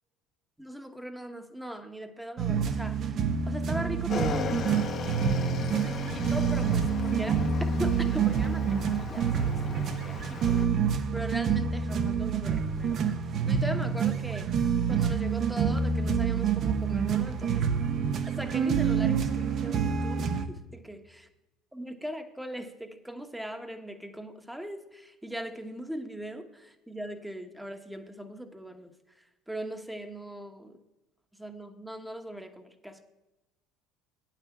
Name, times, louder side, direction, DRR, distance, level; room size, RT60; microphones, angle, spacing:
voice 1, 0.6-4.6 5.7-7.4 7.8-10.5 11.1-14.5 14.9-17.7 18.3-21.2 21.7-28.9 29.5-30.8 31.4-33.0, right 1 dB, 5° right, 6 dB, 1.1 m, -40 dB
sound 1, 2.4-20.5, right 6 dB, 50° right, 0.8 m, -27 dB
Motorcycle / Engine, 4.1-10.7, left 5 dB, 45° left, 1.0 m, -36 dB
9.1 x 5.9 x 7.2 m, 1.0 s
supercardioid pair, 85°, 0 cm